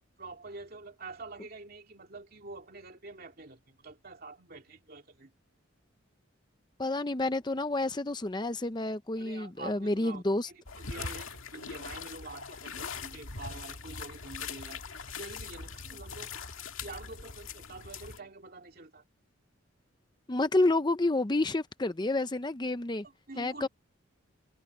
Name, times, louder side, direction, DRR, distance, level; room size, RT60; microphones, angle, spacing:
voice 1, 0.0-5.3 9.2-14.8 15.1-16.3 16.8-19.0 23.0-23.7, right 3 dB, 45° right, 2.5 m, -46 dB
voice 2, 6.8-10.5 20.3-23.0 23.4-23.7, left 2 dB, 20° left, 0.6 m, -29 dB
sound 1, 10.7-18.2, left 5 dB, 75° left, 2.1 m, -41 dB
head